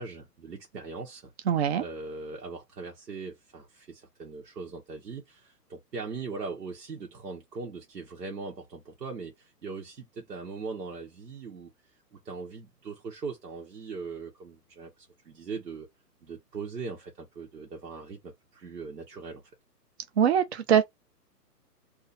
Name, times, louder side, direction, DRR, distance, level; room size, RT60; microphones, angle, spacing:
voice 1, 0.0-1.3 1.8-11.7 12.1-15.9 16.2-19.4, right 4 dB, 85° right, 1.2 m, -40 dB
voice 2, 1.5-1.8 20.2-20.8, right 8 dB, 40° right, 0.8 m, -22 dB
2.8 x 2.7 x 4.0 m
hypercardioid pair, 140°, 49 cm